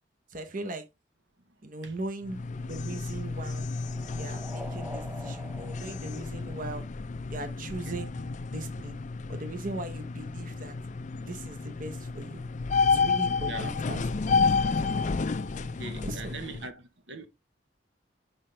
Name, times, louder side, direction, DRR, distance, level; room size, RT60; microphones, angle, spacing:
voice 1, 0.3-0.9 1.6-3.7 4.1-6.8 7.3-8.1 8.5-9.0 9.3-10.7 11.3-12.4 12.8-14.8 15.9-16.3, right 2 dB, 50° right, 1.0 m, -39 dB
sound 1, 2.2-16.7, left 4 dB, 40° left, 0.4 m, -31 dB
sound 2, 2.4-7.2, equal, 10° right, 0.6 m, -46 dB
voice 2, 13.4-13.8 15.6-17.3, right 3 dB, 75° right, 1.0 m, -41 dB
5.8 x 5.7 x 3.4 m
head